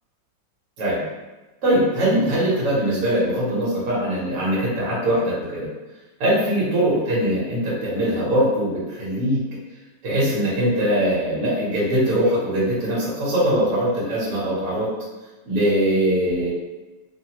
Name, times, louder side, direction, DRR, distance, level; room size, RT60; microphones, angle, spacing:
voice 1, 1.6-5.7 6.2-9.4 10.0-14.9 15.4-16.5, right 1 dB, 55° right, -8 dB, 1.2 m, -21 dB
3.2 x 2.1 x 2.9 m, 1.2 s
omnidirectional pair, 2.1 m